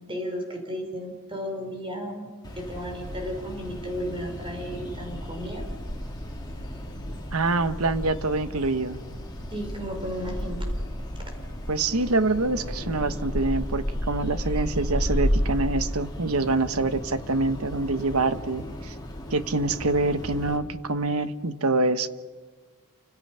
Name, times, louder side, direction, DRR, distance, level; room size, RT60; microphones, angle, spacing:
voice 1, 0.1-2.3 2.6-5.7 9.5-10.7, equal, 25° right, 3 dB, 4.2 m, -34 dB
sound 1, 2.4-20.6, equal, 20° left, 4.0 m, -33 dB
voice 2, 7.3-9.0 11.7-18.9 19.3-22.1, right 3 dB, 75° right, 11 dB, 1.2 m, -25 dB
29.5 x 25.5 x 5.7 m, 1.5 s
head